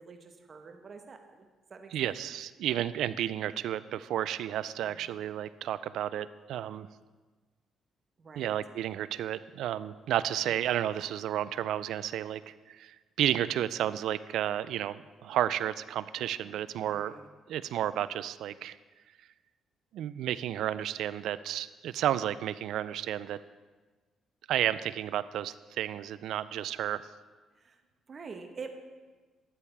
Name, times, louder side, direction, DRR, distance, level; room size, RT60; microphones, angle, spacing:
voice 1, 0.0-2.1 4.8-5.2 8.2-8.6 16.4-17.3 27.6-27.8 28.1-28.7, right 5 dB, 45° right, 6 dB, 1.1 m, -47 dB
voice 2, 1.9-6.9 8.4-17.2 17.5-18.8 19.9-23.4 24.5-27.1, right 11 dB, 75° right, 16 dB, 0.3 m, -32 dB
13.0 x 8.8 x 3.4 m, 1.4 s
supercardioid pair, 70°, 0 cm